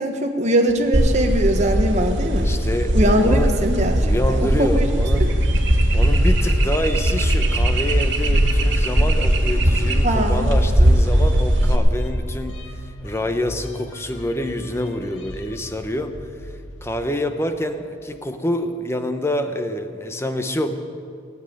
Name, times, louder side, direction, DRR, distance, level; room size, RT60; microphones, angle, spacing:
voice 1, 0.0-2.5 2.9-4.7 5.2-5.3 10.0-10.5, right 1 dB, 35° right, 3 dB, 1.4 m, -21 dB
sound 1, 0.7-18.0, equal, 80° left, 2.0 m, -38 dB
sound 2, 0.9-11.8, right 1 dB, 70° right, 1.7 m, -18 dB
voice 2, 2.4-3.6 4.0-5.3 5.9-12.6 13.0-16.1 16.8-20.7, left 1 dB, 15° left, 7 dB, 0.9 m, -27 dB
19.5 x 7.4 x 10.0 m, 2.3 s
head